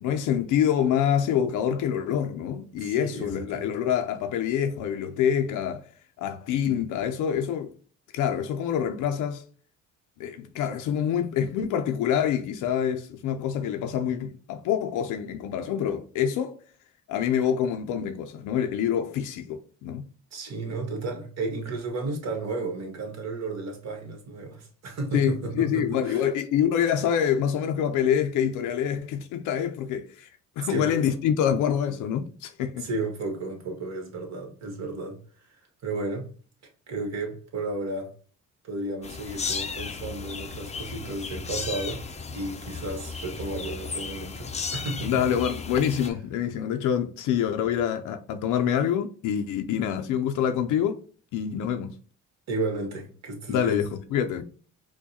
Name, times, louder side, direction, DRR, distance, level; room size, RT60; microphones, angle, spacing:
voice 1, 0.0-5.8 6.2-7.7 8.1-9.4 10.2-16.6 17.1-20.1 25.1-30.3 30.6-32.9 45.0-51.0 51.3-52.0 53.5-54.4, left 9 dB, 85° left, 0.5 m, -26 dB
voice 2, 2.8-3.7 20.3-26.3 30.6-31.0 32.8-36.3 36.9-38.1 38.6-42.0 42.3-45.2 52.5-53.8, right 2 dB, 60° right, 1.3 m, -33 dB
sound 1, 39.0-46.1, left 5 dB, 25° left, 0.4 m, -35 dB
4.6 x 2.2 x 2.8 m
cardioid pair, 90°, 30 cm